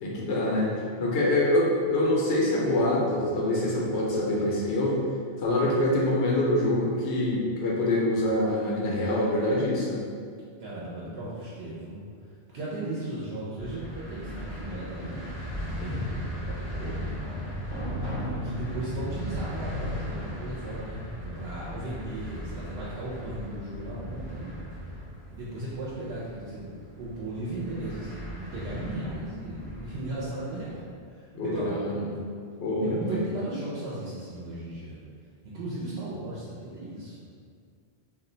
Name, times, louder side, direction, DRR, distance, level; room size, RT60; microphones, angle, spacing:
voice 1, 0.0-0.7 1.0-5.0 5.4-10.0 15.9-16.0 18.1-18.3 31.3-32.0 32.6-33.2, left 1 dB, 85° left, -4 dB, 0.9 m, -25 dB
voice 2, 10.6-12.0 12.5-15.3 15.6-17.1 18.0-24.6 25.3-26.7 27.0-30.8 31.1-32.1 32.8-35.0 35.4-37.4, right 1 dB, 70° right, -8 dB, 0.8 m, -36 dB
sound 1, 13.6-30.8, equal, 25° right, 0.8 m, -37 dB
2.4 x 2.1 x 3.7 m, 2.2 s
omnidirectional pair, 1.1 m